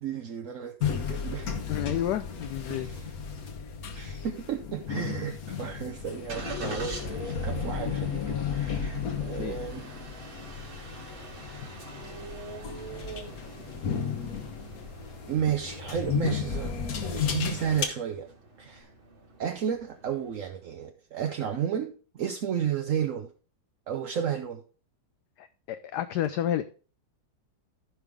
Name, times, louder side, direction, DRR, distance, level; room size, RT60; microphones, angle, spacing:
voice 1, 0.0-1.6 2.7-3.1 3.9-9.9 15.3-16.7 17.0-18.3 18.6-18.9 19.4-23.3 23.9-24.6, right 8 dB, 60° right, 5 dB, 0.8 m, -32 dB
sound 1, 0.8-17.8, left 6 dB, 55° left, 1.4 m, -34 dB
voice 2, 1.7-2.9 9.4-9.6 25.4-26.6, left 11 dB, 75° left, 11 dB, 1.0 m, -30 dB
Engine starting, 5.1-20.4, right 3 dB, 80° right, 3.3 m, -46 dB
14.5 x 5.4 x 3.5 m, 0.37 s
omnidirectional pair, 2.1 m